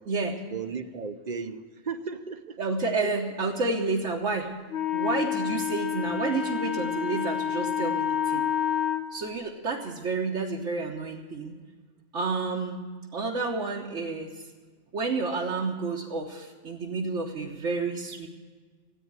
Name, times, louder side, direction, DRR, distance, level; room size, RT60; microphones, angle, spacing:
voice 1, 0.5-2.6 3.0-3.1, right 5 dB, 45° right, 10 dB, 0.7 m, -35 dB
voice 2, 2.6-4.5 4.9-8.4 9.1-11.6 12.1-12.8 13.1-14.3 14.9-18.3, right 3 dB, 75° right, -2 dB, 1.4 m, -30 dB
Wind instrument woodwind instrument, 4.7-9.1, left 9 dB, 55° left, 1.1 m, -28 dB
14.0 x 8.7 x 9.4 m, 1.5 s
omnidirectional pair, 1.2 m